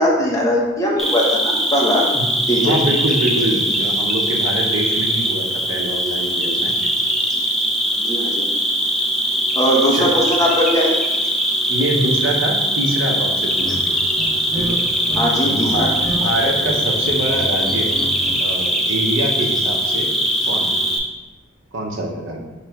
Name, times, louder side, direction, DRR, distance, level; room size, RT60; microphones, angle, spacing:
voice 1, 0.0-2.1 2.5-2.8 8.0-8.5 9.5-10.9 15.2-15.9, equal, 15° left, -4 dB, 0.8 m, -19 dB
Cricket, 1.0-21.0, equal, ahead, 0.3 m, -21 dB
voice 2, 2.6-6.7 9.9-10.1 11.7-14.0 14.6-14.8 15.4-17.9 18.4-20.1 20.5-20.8 21.7-22.4, right 1 dB, 70° right, 0 dB, 0.7 m, -24 dB
sound 1, 13.5-13.8 14.1-15.3 15.5-16.2 16.5-18.4, equal, 40° right, 1.3 m, -29 dB
3.2 x 3.1 x 4.7 m, 1.2 s
head